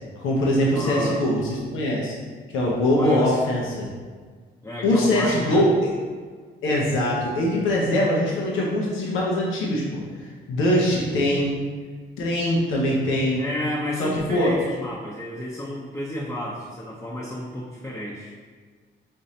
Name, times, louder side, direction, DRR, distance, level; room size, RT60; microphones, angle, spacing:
voice 1, 0.2-2.1 2.5-3.9 4.8-5.7 6.6-11.6 12.2-13.4 14.0-14.5, left 1 dB, 85° left, -3 dB, 0.8 m, -22 dB
voice 2, 0.7-1.2 2.9-3.4 4.6-5.6 13.4-18.3, equal, 15° left, -6 dB, 0.7 m, -31 dB
5.3 x 3.1 x 2.7 m, 1.6 s
cardioid pair, 90°, 20 cm